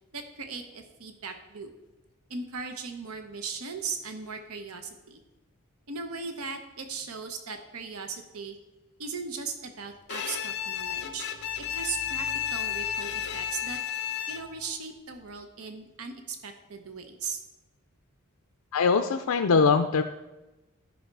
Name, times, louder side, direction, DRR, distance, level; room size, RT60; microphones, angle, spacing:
voice 1, 0.1-1.7 2.3-5.2 5.9-8.6 9.0-13.8 14.3-17.4, right 5 dB, 90° right, 6 dB, 1.0 m, -38 dB
Bowed string instrument, 10.1-14.7, left 9 dB, 55° left, 0.9 m, -32 dB
voice 2, 18.7-20.0, left 5 dB, 85° left, 7 dB, 0.5 m, -22 dB
12.5 x 5.6 x 4.7 m, 1.0 s
head